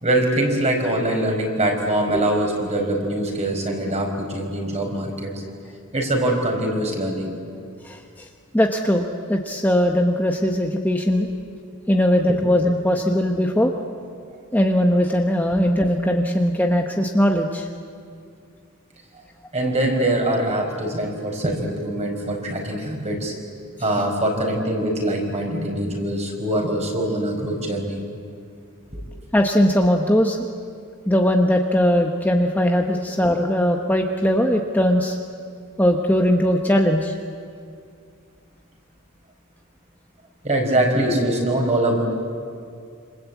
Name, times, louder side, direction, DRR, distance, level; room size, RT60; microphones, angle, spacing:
voice 1, 0.0-5.3 5.9-7.3 12.3-12.4 19.5-23.3 23.8-28.0 28.9-29.0 32.9-33.0 40.4-42.0, right 1 dB, 30° right, 2 dB, 5.0 m, -23 dB
voice 2, 8.5-11.3 11.9-13.7 14.5-17.7 29.3-30.4 31.1-35.2 35.8-37.2, equal, 10° left, 2 dB, 1.2 m, -19 dB
27.0 x 26.5 x 8.4 m, 2.3 s
head